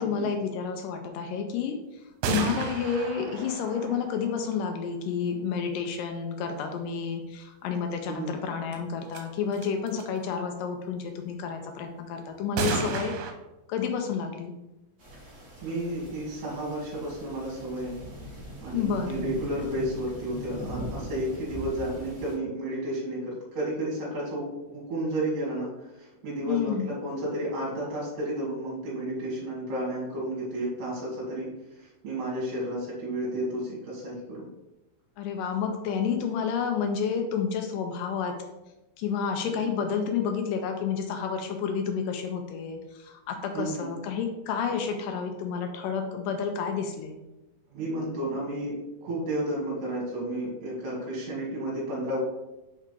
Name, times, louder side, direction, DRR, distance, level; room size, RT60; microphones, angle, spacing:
voice 1, 0.0-13.2 13.7-14.5 18.7-19.2 26.5-26.9 35.2-38.3 39.0-47.2, left 6 dB, 80° left, 5 dB, 2.1 m, -30 dB
sound 1, 2.2-5.1 8.7-8.8 9.1-9.2 9.5-10.0 12.6-13.3, right 5 dB, 80° right, 2.5 m, -32 dB
sound 2, 15.0-22.3, equal, 30° right, 1.4 m, -41 dB
voice 2, 15.6-18.0 18.3-34.5 39.4-39.5 43.5-43.9 47.7-52.2, right 1 dB, 65° right, -5 dB, 2.9 m, -32 dB
5.4 x 4.8 x 3.7 m, 0.99 s
omnidirectional pair, 4.2 m